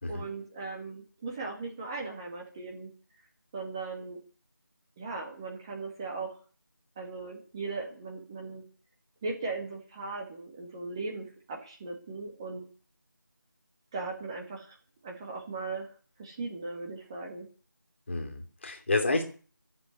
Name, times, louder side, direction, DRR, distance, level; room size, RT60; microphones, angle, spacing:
voice 1, 0.1-2.9 3.5-4.2 5.0-6.4 7.0-8.6 9.2-12.6 13.9-14.8 15.0-15.9 16.2-17.5, right 3 dB, 15° right, 0 dB, 1.8 m, -38 dB
voice 2, 18.1-19.2, left 2 dB, 35° left, 4 dB, 2.7 m, -29 dB
13.0 x 7.8 x 9.6 m, 0.40 s
figure-of-eight pair, 170°, 11 cm